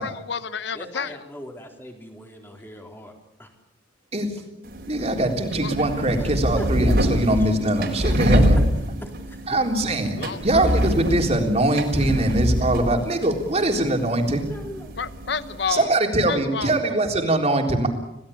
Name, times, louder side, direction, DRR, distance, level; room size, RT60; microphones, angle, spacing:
voice 1, 0.0-1.2 5.6-5.7 10.2-10.4 15.0-15.9 16.3-16.8, left 6 dB, 60° left, 14 dB, 0.9 m, -30 dB
voice 2, 0.7-3.1 3.4-3.5 6.2-6.9 7.4-7.5 8.1-8.2 9.0-9.6 14.4-15.0 15.4-15.6, equal, 10° left, 3 dB, 3.8 m, -40 dB
sound 1, 4.6-15.7, equal, 55° right, 4.3 m, -25 dB
voice 3, 4.9-8.6 9.5-14.4 15.7-17.9, right 1 dB, 35° right, 3 dB, 3.8 m, -22 dB
28.0 x 17.5 x 8.7 m, 0.91 s
head